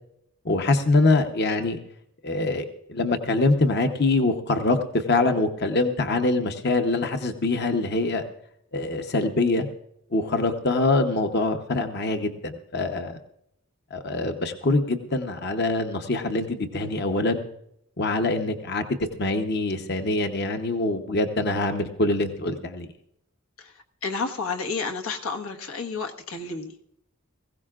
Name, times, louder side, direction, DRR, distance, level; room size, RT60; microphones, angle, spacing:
voice 1, 0.4-1.8 2.2-8.2 8.7-9.7 10.1-13.2 13.9-17.4 18.0-18.8 19.2-22.9, left 2 dB, 50° left, 6 dB, 0.9 m, -24 dB
voice 2, 23.6-26.7, left 4 dB, 85° left, 4 dB, 1.4 m, -31 dB
20.5 x 16.5 x 2.5 m, 0.76 s
head